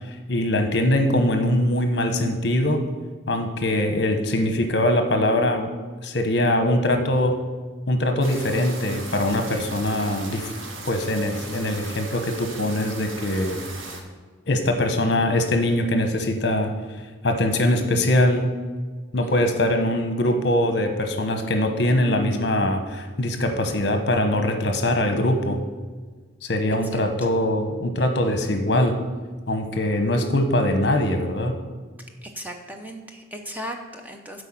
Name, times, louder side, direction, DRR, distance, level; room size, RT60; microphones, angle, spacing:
voice 1, 0.3-2.8 3.3-5.7 6.0-7.4 7.9-10.5 10.9-13.6 14.5-16.7 17.2-18.5 19.1-25.6 26.4-29.0 29.5-31.6, left 1 dB, 60° left, 6 dB, 1.0 m, -22 dB
sound 1, 8.2-14.0, right 2 dB, 90° right, 1.4 m, -38 dB
voice 2, 32.2-34.4, equal, 10° right, 4 dB, 0.6 m, -37 dB
8.2 x 5.0 x 7.4 m, 1.4 s
head